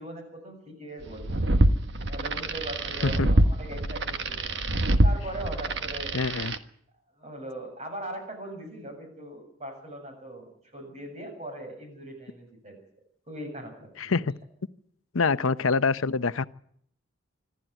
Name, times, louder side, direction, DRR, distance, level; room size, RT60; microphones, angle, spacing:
voice 1, 0.0-1.5 2.1-4.5 5.0-6.2 7.2-12.8 13.3-14.2, right 1 dB, 30° right, 3 dB, 7.1 m, -40 dB
sound 1, 1.1-6.6, right 1 dB, 55° right, 1.3 m, -25 dB
voice 2, 6.1-6.5 14.0-14.2 15.1-16.4, left 4 dB, 85° left, 14 dB, 0.8 m, -25 dB
26.5 x 12.5 x 9.1 m, 0.67 s
head